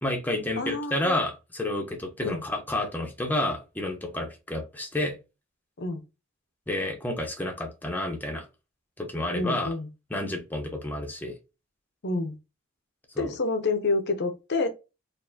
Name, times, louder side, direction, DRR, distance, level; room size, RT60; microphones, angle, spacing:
voice 1, 0.0-5.2 6.7-8.5 9.0-9.7 10.1-11.3 13.1-13.3, left 1 dB, 10° left, 0.8 m, -30 dB
voice 2, 0.6-1.2 2.2-2.4 5.8-6.0 9.3-9.9 12.0-12.4 13.2-14.7, left 3 dB, 55° left, 0.7 m, -28 dB
4.3 x 2.6 x 2.7 m
head